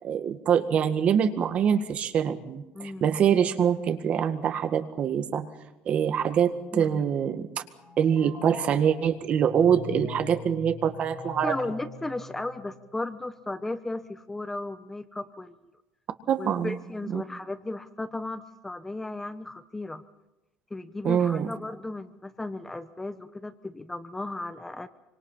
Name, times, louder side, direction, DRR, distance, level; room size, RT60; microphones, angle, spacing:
voice 1, 0.0-5.5 5.9-7.5 8.0-11.5 16.3-16.8 17.1-17.2 21.0-21.5, right 8 dB, 45° right, 9 dB, 1.8 m, -24 dB
sound 1, 7.7-13.2, left 4 dB, 35° left, 6.8 m, -42 dB
voice 2, 11.4-15.5 16.4-20.0 20.7-24.9, left 2 dB, 10° left, 11 dB, 0.9 m, -35 dB
26.5 x 25.0 x 5.7 m, 0.97 s
cardioid pair, 140°, 3 cm